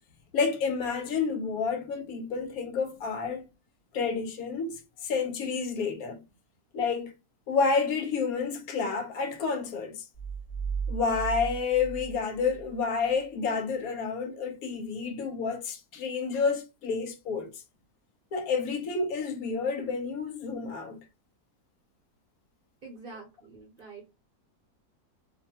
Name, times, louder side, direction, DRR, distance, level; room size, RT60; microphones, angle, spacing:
voice 1, 0.3-3.4 3.9-6.2 6.7-7.1 7.5-10.1 10.9-17.6 18.3-21.0, left 5 dB, 70° left, 1.0 m, -29 dB
sound 1, 10.1-12.8, right 6 dB, 35° left, 1.2 m, -36 dB
voice 2, 22.8-24.2, right 4 dB, 45° right, 0.8 m, -46 dB
2.6 x 2.1 x 2.7 m
omnidirectional pair, 1.7 m